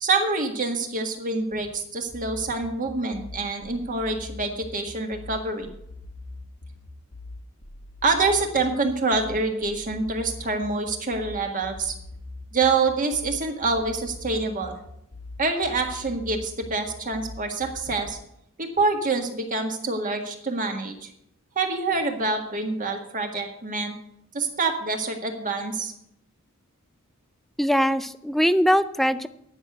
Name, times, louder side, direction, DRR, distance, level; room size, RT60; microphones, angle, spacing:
voice 1, 0.0-5.7 8.0-11.9 12.5-14.8 15.4-18.2 18.6-21.1 21.6-23.9 24.3-25.9, right 3 dB, 40° right, 3 dB, 1.7 m, -26 dB
sound 1, 2.1-18.1, left 2 dB, 75° left, 1.6 m, -42 dB
voice 2, 27.6-29.3, equal, ahead, 13 dB, 0.4 m, -21 dB
9.9 x 6.4 x 8.0 m, 0.76 s
head